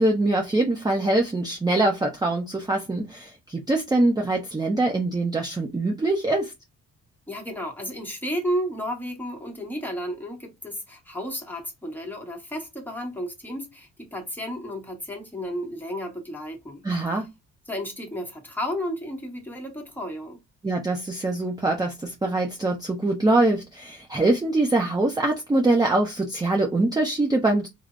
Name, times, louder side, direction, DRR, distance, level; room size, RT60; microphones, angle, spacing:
voice 1, 0.0-6.5 16.8-17.3 20.6-27.7, right 2 dB, 15° right, 0.6 m, -23 dB
voice 2, 7.3-16.8 17.1-17.2 17.7-20.4, equal, 5° left, 1.0 m, -32 dB
3.2 x 2.0 x 2.4 m
cardioid pair, 90°, 30 cm